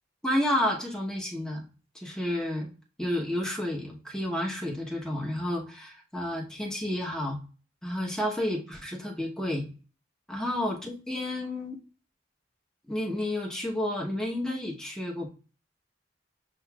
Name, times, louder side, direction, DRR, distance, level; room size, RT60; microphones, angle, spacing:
voice 1, 0.2-1.6 1.9-2.7 3.0-7.4 7.8-9.6 10.3-11.8 12.9-15.3, left 1 dB, 5° left, -1 dB, 0.9 m, -31 dB
7.5 x 2.5 x 2.3 m, 0.35 s
head